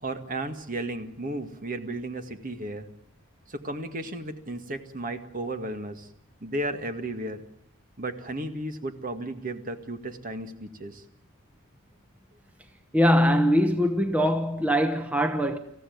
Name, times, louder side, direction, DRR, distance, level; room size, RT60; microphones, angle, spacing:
voice 1, 0.0-2.9 3.5-6.1 6.4-7.4 8.0-11.0, right 1 dB, 40° right, 1.9 m, -34 dB
voice 2, 12.9-15.6, equal, 5° right, 1.1 m, -22 dB
26.0 x 15.5 x 9.4 m
head